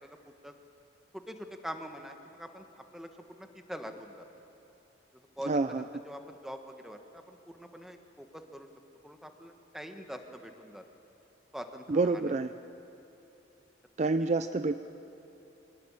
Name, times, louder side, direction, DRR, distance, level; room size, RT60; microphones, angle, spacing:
voice 1, 0.0-0.5 1.1-4.2 5.4-8.7 9.0-10.8 11.5-12.3 14.0-14.1, equal, ahead, 5 dB, 1.3 m, -44 dB
voice 2, 5.5-5.8 11.9-12.5 14.0-14.8, right 3 dB, 40° right, 11 dB, 0.4 m, -27 dB
24.0 x 18.5 x 8.9 m, 2.8 s
head